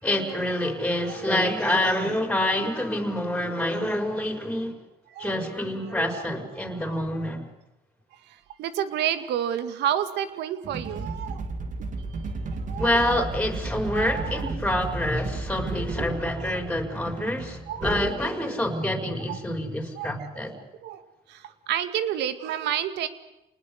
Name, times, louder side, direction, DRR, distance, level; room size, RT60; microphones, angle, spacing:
voice 1, 0.0-4.8 5.2-7.5 12.7-20.5, left 1 dB, 5° left, 5 dB, 5.3 m, -27 dB
voice 2, 8.3-11.4 12.7-13.1 13.9-14.5 16.4-16.6 17.7-18.0 19.3-19.4 20.0-20.1 20.8-21.0 21.3-23.1, right 10 dB, 80° right, 11 dB, 2.2 m, -30 dB
sound 1, 10.6-18.1, right 3 dB, 45° right, 3.0 m, -34 dB
28.5 x 20.0 x 8.2 m, 0.95 s
cardioid pair, 90°, 17 cm